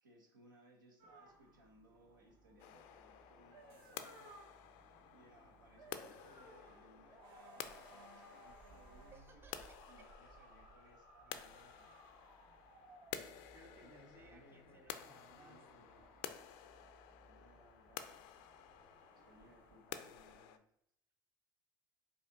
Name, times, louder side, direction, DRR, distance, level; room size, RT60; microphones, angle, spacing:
voice 1, 0.0-4.3 5.1-9.4 9.9-11.9 13.7-16.1 17.2-18.4 19.2-20.7, right 1 dB, 85° right, 2 dB, 0.7 m, -65 dB
sound 1, 1.0-20.3, right 2 dB, 55° right, 0.8 m, -62 dB
sound 2, 2.6-20.6, left 10 dB, 60° left, 0.4 m, -52 dB
voice 2, 9.1-10.1 13.5-16.1, right 3 dB, 20° right, 6 dB, 0.5 m, -63 dB
4.9 x 2.6 x 2.6 m, 0.74 s
hypercardioid pair, 70°, 10 cm